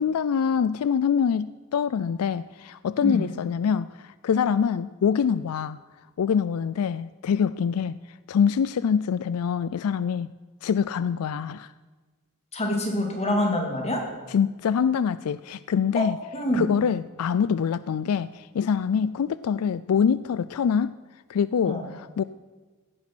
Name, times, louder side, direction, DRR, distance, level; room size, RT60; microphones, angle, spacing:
voice 1, 0.0-5.8 6.2-8.0 8.3-10.3 10.6-11.7 14.3-16.2 16.5-21.0 21.3-22.2, left 7 dB, 85° left, 16 dB, 0.4 m, -25 dB
voice 2, 3.0-3.3 12.5-14.0 15.9-16.1 16.3-16.7 21.6-21.9, left 1 dB, 30° left, 2 dB, 2.7 m, -26 dB
16.0 x 9.9 x 6.1 m, 1.3 s
head